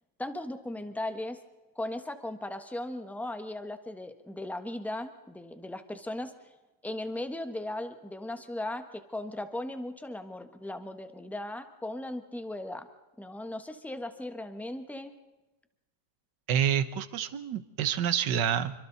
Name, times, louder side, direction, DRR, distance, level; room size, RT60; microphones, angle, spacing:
voice 1, 0.2-1.4 1.7-6.3 6.8-12.9 13.2-15.1, left 1 dB, ahead, 8 dB, 1.1 m, -37 dB
voice 2, 16.5-18.7, right 9 dB, 80° right, 13 dB, 1.6 m, -28 dB
27.5 x 24.5 x 4.0 m, 1.1 s
omnidirectional pair, 1.8 m